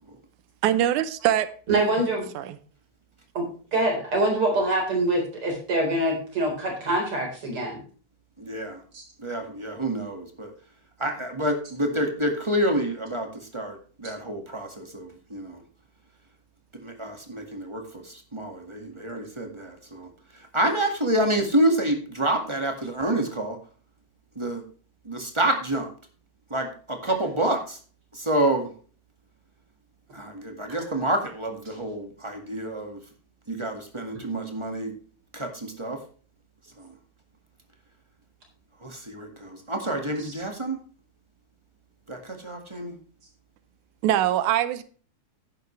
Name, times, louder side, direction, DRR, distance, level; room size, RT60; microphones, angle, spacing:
voice 1, 0.6-1.5 2.4-2.6 44.0-44.8, right 12 dB, 90° right, 14 dB, 2.2 m, -23 dB
voice 2, 1.7-2.3 3.3-3.4 3.7-7.8 8.9-9.0 30.7-30.9 34.1-34.2 40.2-40.3, right 1 dB, 45° right, 0 dB, 5.0 m, -25 dB
voice 3, 8.4-8.8 9.2-10.5 11.0-13.3 13.5-15.6 16.8-20.1 20.5-23.6 24.3-24.6 25.0-25.9 26.5-27.8 28.1-28.7 30.1-33.0 33.5-35.0 35.3-36.0 36.8-36.9 38.8-40.8 42.1-42.9, right 1 dB, 15° right, 3 dB, 1.3 m, -28 dB
11.0 x 10.5 x 3.2 m, 0.41 s
omnidirectional pair, 3.3 m